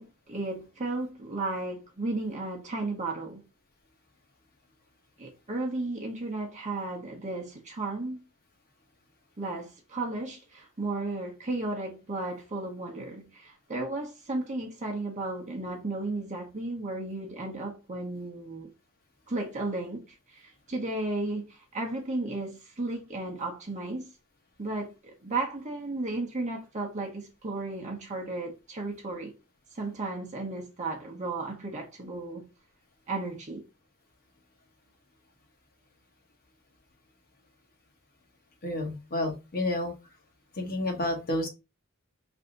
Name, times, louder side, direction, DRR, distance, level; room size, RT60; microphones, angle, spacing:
voice 1, 0.0-3.4 5.2-8.2 9.4-18.7 19.3-24.1 24.6-29.3 29.7-32.5 33.1-33.6, right 2 dB, 35° right, 0.7 m, -34 dB
voice 2, 38.6-39.9 40.6-41.5, left 1 dB, 45° left, 1.1 m, -30 dB
3.4 x 2.6 x 3.8 m
head